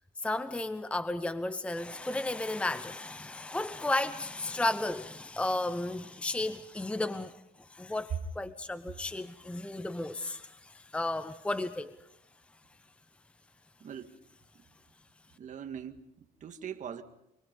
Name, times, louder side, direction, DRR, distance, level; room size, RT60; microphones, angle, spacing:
voice 1, 0.2-12.0, left 2 dB, 5° left, 0.8 m, -34 dB
voice 2, 13.8-14.2 14.5-14.7 15.4-17.0, right 8 dB, 45° right, 2.0 m, -42 dB
25.5 x 24.0 x 5.4 m
cardioid pair, 110°, 17 cm